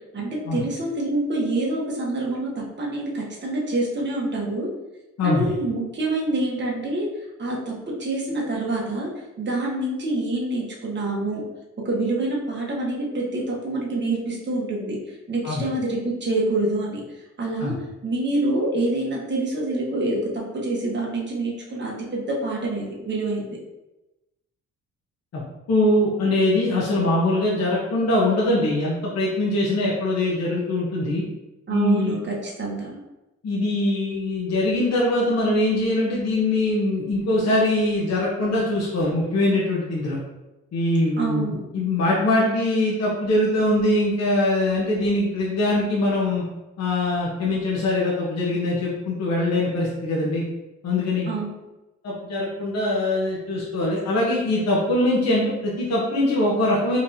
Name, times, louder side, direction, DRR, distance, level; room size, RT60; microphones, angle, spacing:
voice 1, 0.1-4.7 5.2-7.1 7.4-9.1 9.4-11.4 11.8-15.0 15.3-17.0 17.4-17.7 18.0-23.6 31.7-33.0 41.2-41.6 51.3-51.5, right 2 dB, 35° right, -3 dB, 1.4 m, -26 dB
voice 2, 5.2-5.5 15.4-15.6 17.6-17.7 25.3-25.4 25.7-31.2 31.7-32.1 33.4-40.2 40.7-46.4 46.8-50.4 50.8-51.3 52.0-57.0, left 1 dB, 60° left, -5 dB, 1.1 m, -22 dB
4.1 x 3.3 x 2.8 m, 1.0 s
cardioid pair, 90°, 30 cm